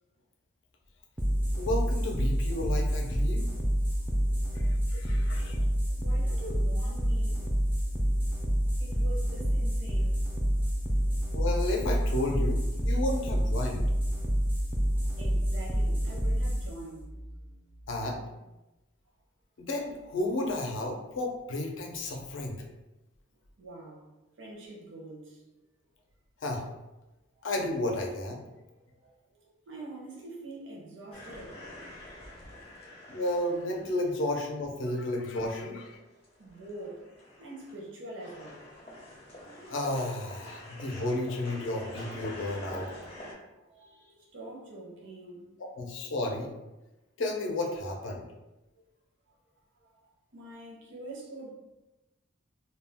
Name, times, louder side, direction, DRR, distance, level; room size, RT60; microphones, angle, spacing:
sound 1, 1.2-18.2, equal, 10° right, 0.3 m, -28 dB
voice 1, 1.6-3.5 4.5-5.6 11.3-13.8 17.9-18.2 19.6-22.6 26.4-26.7 27.4-28.4 33.1-36.0 39.7-42.9 45.6-46.5 47.2-48.2, left 1 dB, 70° left, 1 dB, 0.5 m, -32 dB
voice 2, 4.1-7.5 8.8-10.3 10.6-10.7 11.1-11.2 12.7-12.8 14.1-14.3 15.0-17.1 23.6-24.1 24.4-25.4 27.4-27.5 28.4-31.7 32.4-33.2 34.8-34.9 36.1-37.0 37.4-38.9 40.6-40.8 43.6-45.5 49.8-50.0 50.3-51.5, right 2 dB, 65° right, -3 dB, 0.6 m, -46 dB
sound 2, 31.1-34.5 35.0-35.1 35.4-37.9 38.2-43.3, left 1 dB, 30° left, 0.6 m, -47 dB
2.2 x 2.2 x 3.4 m, 1.0 s
head